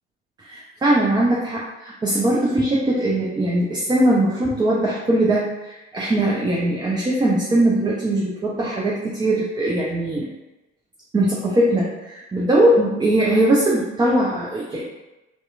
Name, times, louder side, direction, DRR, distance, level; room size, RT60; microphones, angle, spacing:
voice 1, 0.4-10.3 11.1-14.9, right 1 dB, 10° right, -5 dB, 0.4 m, -20 dB
2.8 x 2.1 x 2.4 m, 1.0 s
figure-of-eight pair, 55°, 36 cm